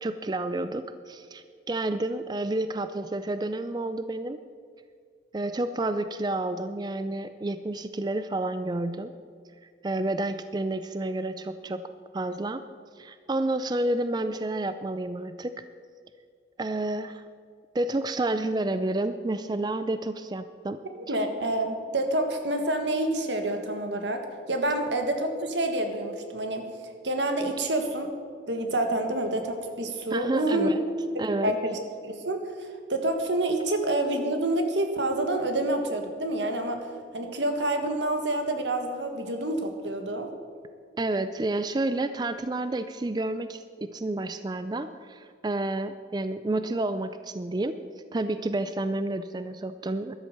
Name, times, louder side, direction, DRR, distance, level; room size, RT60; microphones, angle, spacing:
voice 1, 0.0-4.4 5.3-9.1 9.8-12.6 13.0-15.5 16.6-17.2 17.7-20.8 21.1-21.2 30.1-30.8 31.2-31.6 41.0-47.8 48.1-50.1, right 2 dB, 25° right, 11 dB, 0.4 m, -30 dB
voice 2, 20.9-24.2 24.5-26.6 27.0-28.1 28.5-30.7 31.1-36.8 37.1-40.3, right 1 dB, 80° right, 5 dB, 1.7 m, -28 dB
13.0 x 11.0 x 6.6 m, 2.1 s
head